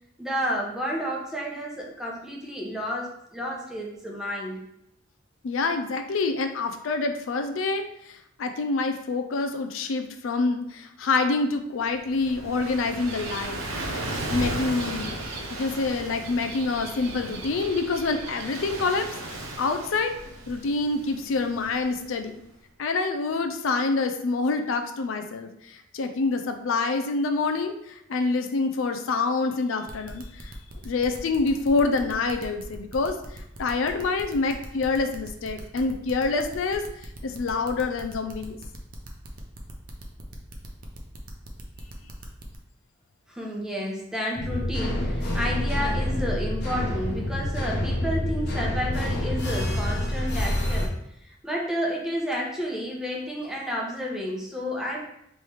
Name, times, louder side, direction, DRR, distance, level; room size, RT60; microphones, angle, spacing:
voice 1, 0.2-4.6 43.3-51.0 51.2-55.0, equal, 5° right, -3 dB, 0.8 m, -31 dB
voice 2, 5.4-13.6 14.3-15.2 15.5-20.1 20.5-22.4 22.8-30.5 30.8-38.6, left 3 dB, 70° left, 7 dB, 0.4 m, -27 dB
Gull seagull / Waves surf, 11.8-22.4, right 2 dB, 80° right, 0.9 m, -35 dB
sound 1, 29.9-42.6, right 2 dB, 40° right, 0.6 m, -44 dB
sound 2, 44.4-50.9, left 1 dB, 55° left, 0.9 m, -27 dB
3.3 x 3.1 x 4.5 m, 0.79 s
head